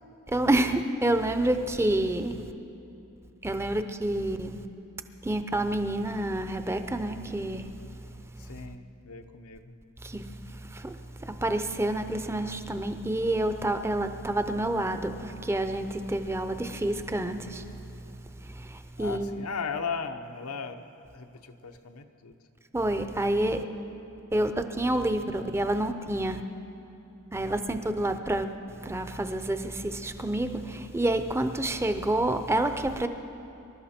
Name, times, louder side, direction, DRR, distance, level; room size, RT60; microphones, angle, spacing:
voice 1, 0.3-2.4 3.4-4.6 5.2-7.7 10.0-17.6 18.4-19.4 22.7-23.6 24.3-26.4 27.3-28.5 28.8-33.1, right 1 dB, 10° right, 8 dB, 0.6 m, -28 dB
voice 2, 8.4-9.7 19.0-20.9 21.1-22.4, left 5 dB, 85° left, 6 dB, 0.9 m, -37 dB
25.5 x 12.0 x 4.4 m, 2.8 s
head